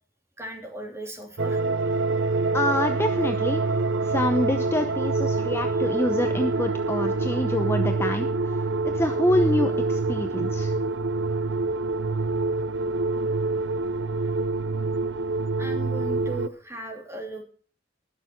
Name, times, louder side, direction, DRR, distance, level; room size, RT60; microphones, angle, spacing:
voice 1, 0.4-1.6 5.8-5.9 13.1-13.3 14.2-14.3 15.6-17.4, right 2 dB, 15° right, 2 dB, 3.0 m, -37 dB
sound 1, 1.4-16.5, right 3 dB, 80° right, 0.6 m, -26 dB
voice 2, 2.5-3.6 4.0-8.5 8.9-10.7, left 1 dB, 15° left, 6 dB, 0.8 m, -26 dB
20.0 x 6.9 x 4.5 m, 0.42 s
head